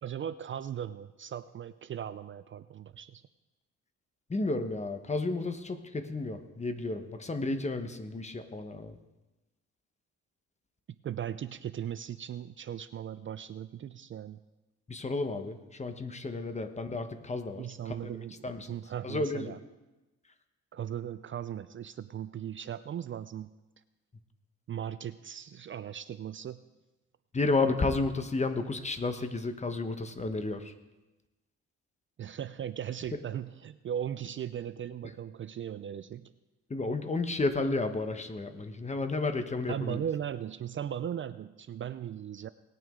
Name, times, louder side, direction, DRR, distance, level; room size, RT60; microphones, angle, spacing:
voice 1, 0.0-3.2 11.0-14.4 16.5-16.6 17.6-19.6 20.7-23.5 24.7-26.6 32.2-36.3 39.7-42.5, right 9 dB, 40° right, 13 dB, 0.4 m, -38 dB
voice 2, 4.3-9.0 14.9-18.1 18.4-18.7 19.0-19.6 27.3-30.7 36.7-40.0, left 3 dB, 20° left, 9 dB, 1.1 m, -32 dB
18.5 x 9.2 x 3.7 m, 1.0 s
cardioid pair, 90°, 30 cm